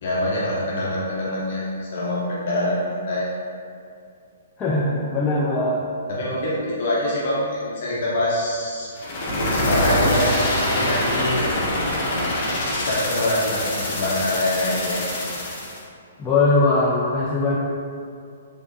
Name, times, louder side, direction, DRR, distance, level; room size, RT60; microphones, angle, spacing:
voice 1, 0.0-3.3 6.1-8.9 9.3-10.3 10.6-11.5 12.8-15.0, left 1 dB, 60° left, -6 dB, 0.8 m, -25 dB
voice 2, 4.6-5.9 16.2-17.6, left 2 dB, 20° left, -7 dB, 0.4 m, -20 dB
sound 1, 9.0-15.8, left 1 dB, 40° left, 1.1 m, -24 dB
3.6 x 3.3 x 2.7 m, 2.4 s
hypercardioid pair, 140°, 0 cm